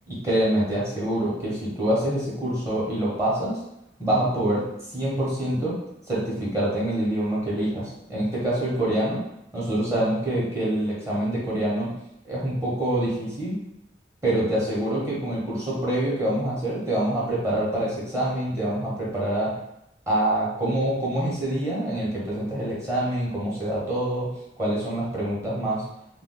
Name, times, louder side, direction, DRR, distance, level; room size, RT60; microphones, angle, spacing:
voice 1, 0.1-3.6 4.0-4.6 4.9-5.8 6.1-9.2 9.5-11.9 12.2-13.6 14.2-19.5 20.1-24.3 24.6-25.8, right 1 dB, 15° right, -7 dB, 0.8 m, -25 dB
2.3 x 2.2 x 3.6 m, 0.80 s
head